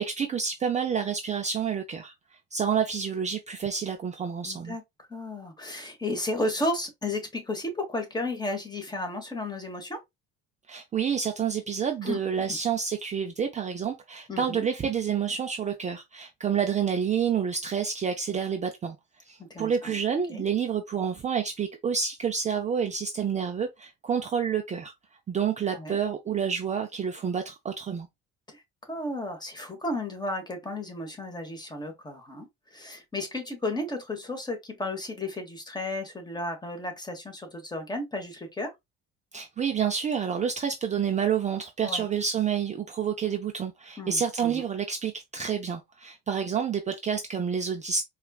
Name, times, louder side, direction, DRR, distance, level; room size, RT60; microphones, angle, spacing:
voice 1, 0.0-2.1 2.5-4.8 10.7-19.0 19.3-24.9 25.3-28.1 39.3-48.0, right 7 dB, 25° right, 0.4 m, -28 dB
voice 2, 4.4-4.8 5.1-10.0 12.0-12.2 14.3-14.6 19.4-19.9 20.3-20.4 25.7-26.0 28.5-38.7 41.8-42.0 44.0-44.6, left 1 dB, 15° left, 1.2 m, -33 dB
4.2 x 2.4 x 2.3 m
cardioid pair, 110°, 29 cm